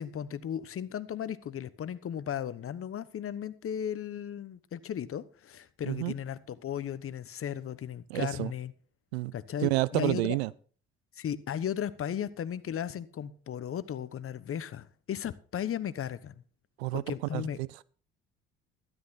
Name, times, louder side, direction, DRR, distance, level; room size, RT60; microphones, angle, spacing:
voice 1, 0.0-8.7 9.3-10.4 11.1-16.3 16.9-17.6, left 9 dB, 45° left, 1.1 m, -36 dB
voice 2, 8.1-8.5 9.1-9.3 9.6-10.5 16.8-17.0 17.3-17.8, right 20 dB, 90° right, 0.5 m, -30 dB
13.0 x 11.0 x 4.1 m
hypercardioid pair, 60°, 31 cm